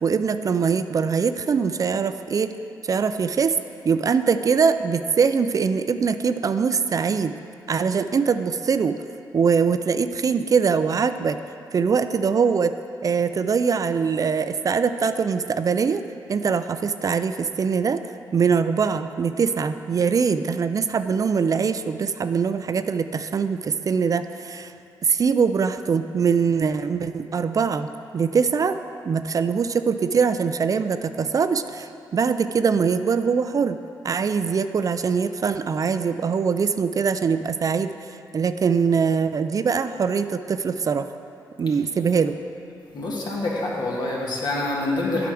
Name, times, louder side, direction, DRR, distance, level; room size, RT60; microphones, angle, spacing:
voice 1, 0.0-2.5 2.8-3.6 3.8-7.3 7.7-9.0 9.3-11.4 11.7-12.7 13.0-16.0 16.3-18.0 18.3-24.7 25.0-28.8 29.1-33.8 34.0-37.9 38.3-41.1 41.6-42.4, right 6 dB, 45° right, 10 dB, 0.3 m, -22 dB
voice 2, 42.9-45.3, left 2 dB, 60° left, -3 dB, 1.7 m, -26 dB
8.5 x 4.7 x 6.1 m, 2.5 s
cardioid pair, 60°, 8 cm